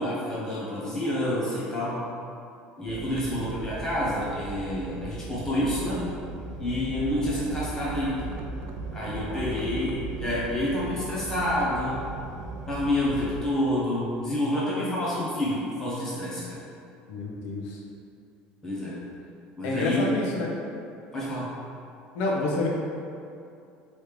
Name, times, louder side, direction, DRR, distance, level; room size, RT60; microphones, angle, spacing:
voice 1, 0.0-2.1 2.8-6.1 6.6-8.3 8.9-12.0 12.7-16.6 18.6-19.0 19.6-20.2 21.1-21.5, left 1 dB, 15° left, -8 dB, 0.8 m, -28 dB
sound 1, 2.9-13.5, right 4 dB, 55° right, 0.4 m, -37 dB
voice 2, 17.1-17.8 19.6-20.5 22.1-22.7, left 2 dB, 65° left, -2 dB, 0.9 m, -28 dB
5.1 x 3.2 x 3.2 m, 2.5 s
cardioid pair, 175°, 4 cm